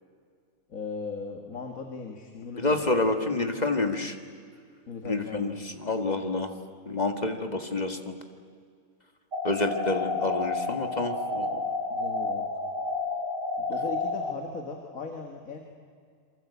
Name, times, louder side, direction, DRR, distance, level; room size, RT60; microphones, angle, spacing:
voice 1, 0.7-2.9 4.9-5.5 11.5-11.6 11.9-12.5 13.6-15.6, left 4 dB, 85° left, 3 dB, 2.1 m, -38 dB
voice 2, 2.6-4.2 5.0-6.5 6.9-8.1 9.4-11.6, left 2 dB, 30° left, 6 dB, 1.8 m, -28 dB
sound 1, 9.3-14.3, left 3 dB, 90° right, 3.3 m, -30 dB
27.5 x 23.5 x 8.3 m, 2.1 s
omnidirectional pair, 1.4 m